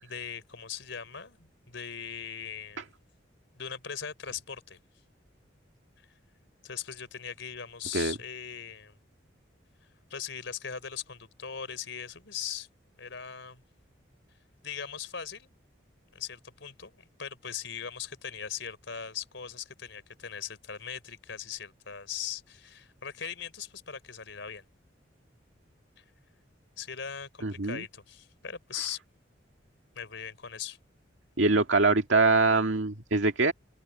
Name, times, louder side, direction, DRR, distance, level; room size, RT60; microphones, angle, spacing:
voice 1, 0.0-2.9 3.6-4.8 6.6-9.0 10.1-12.7 13.0-13.6 14.6-15.5 16.1-24.6 26.0-26.1 26.8-29.0 30.0-30.8, left 7 dB, 75° left, 3.7 m, -40 dB
voice 2, 27.4-27.9 31.4-33.5, right 3 dB, 80° right, 1.9 m, -24 dB
open air
head